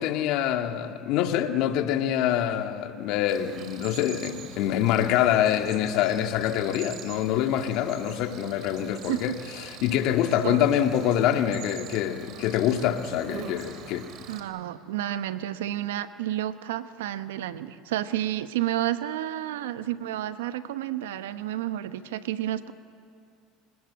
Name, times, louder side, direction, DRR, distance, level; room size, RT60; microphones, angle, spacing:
voice 1, 0.0-14.1, left 10 dB, 65° left, 1.9 m, -25 dB
Cricket, 3.3-14.4, right 7 dB, 60° right, 3.1 m, -44 dB
voice 2, 14.3-22.7, right 13 dB, 85° right, 1.0 m, -30 dB
29.0 x 18.5 x 8.7 m
supercardioid pair, 95°, 0 cm